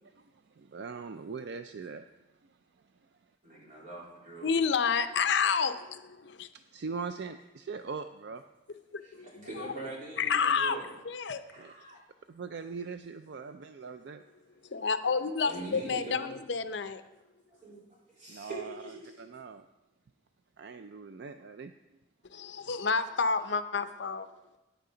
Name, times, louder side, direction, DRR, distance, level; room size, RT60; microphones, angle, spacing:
voice 1, 0.0-2.0 2.4-3.3 6.5-8.4 11.6-11.7 12.3-14.2 18.3-19.7 20.6-21.7, right 5 dB, 60° right, 0.4 m, -42 dB
voice 2, 3.4-4.6 9.0-10.9 11.5-12.0 15.4-16.3 17.6-17.8 18.1-19.1, right 2 dB, 40° right, 3.7 m, -43 dB
voice 3, 4.4-6.5 8.9-9.3 9.6-9.7 10.2-10.8 11.0-11.4 14.7-17.0 22.3-24.3, left 5 dB, 65° left, 0.6 m, -29 dB
14.0 x 9.3 x 3.9 m
head